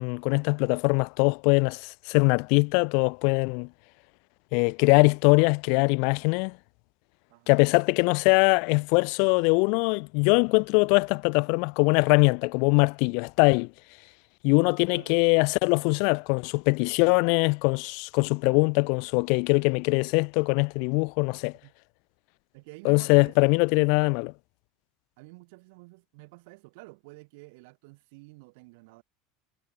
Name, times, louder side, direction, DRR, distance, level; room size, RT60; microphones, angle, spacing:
voice 1, 0.0-3.7 4.5-6.5 7.5-13.7 14.4-21.5 22.8-24.3, left 38 dB, 65° left, 0.6 m, -22 dB
voice 2, 7.3-7.7 14.9-15.2 21.6-21.7 22.5-23.6 23.9-24.0 25.2-29.0, right 27 dB, 70° right, 6.8 m, -50 dB
supercardioid pair, 125°, 0 cm